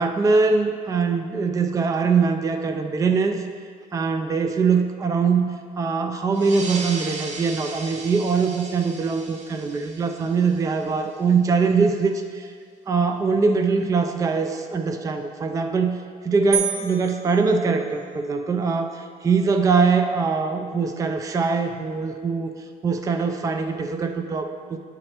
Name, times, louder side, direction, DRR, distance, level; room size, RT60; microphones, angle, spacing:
voice 1, 0.0-3.4 3.9-5.5 5.8-12.5 12.9-22.5 22.8-24.8, right 4 dB, 20° right, 5 dB, 0.4 m, -22 dB
sound 1, 6.3-11.4, right 3 dB, 45° right, 0.8 m, -37 dB
sound 2, 16.5-18.3, right 10 dB, 80° right, 1.1 m, -30 dB
11.0 x 4.8 x 2.9 m, 2.1 s
cardioid pair, 110°, 17 cm